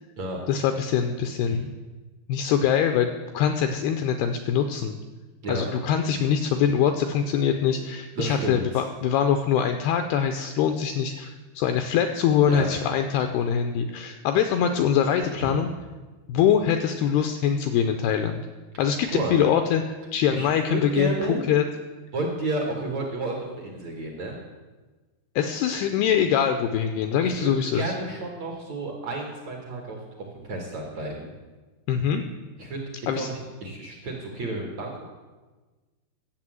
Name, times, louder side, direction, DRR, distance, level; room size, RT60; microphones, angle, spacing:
voice 1, 0.5-1.7 2.3-5.0 5.5-15.7 16.3-18.5 18.8-21.1 21.5-21.6 25.4-27.9 31.9-32.2 33.1-33.3, left 8 dB, 85° left, 7 dB, 2.3 m, -23 dB
voice 2, 8.2-8.8 12.5-12.7 15.2-15.6 19.1-19.3 20.3-21.4 22.1-24.4 27.2-30.0 30.4-31.3 32.6-32.8 33.1-35.1, right 2 dB, 60° right, 0 dB, 2.0 m, -31 dB
12.0 x 8.2 x 7.7 m, 1.3 s
omnidirectional pair, 5.2 m